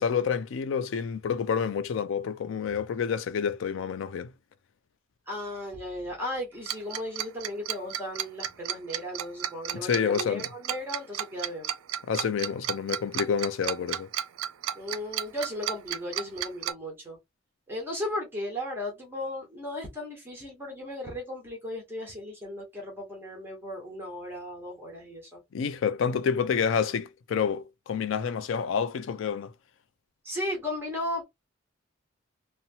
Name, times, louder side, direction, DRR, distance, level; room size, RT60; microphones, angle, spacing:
voice 1, 0.0-4.3 9.7-10.4 12.1-14.1 25.5-29.5, left 6 dB, 65° left, 0.3 m, -28 dB
voice 2, 5.3-11.7 14.7-17.2 17.7-25.4 30.2-31.2, left 1 dB, 10° right, 1.0 m, -36 dB
Tick-tock, 6.7-16.7, right 11 dB, 80° right, 0.4 m, -32 dB
2.9 x 2.1 x 2.7 m
head